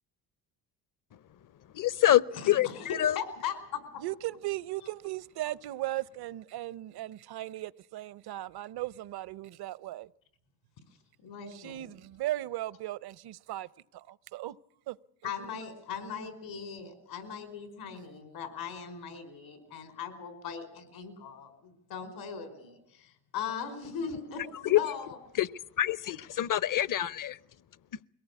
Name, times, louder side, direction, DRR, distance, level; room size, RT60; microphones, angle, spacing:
voice 1, 1.7-3.2 24.6-24.8 25.4-25.5 25.8-27.4, left 13 dB, 50° left, 0.8 m, -26 dB
voice 2, 3.1-3.8 11.2-11.9 15.2-25.2, left 7 dB, 80° left, 5.0 m, -39 dB
voice 3, 4.0-10.1 11.5-14.6 14.9-15.0 15.2-15.3, right 15 dB, 65° right, 0.8 m, -37 dB
22.5 x 17.5 x 8.4 m
supercardioid pair, 60°, 41 cm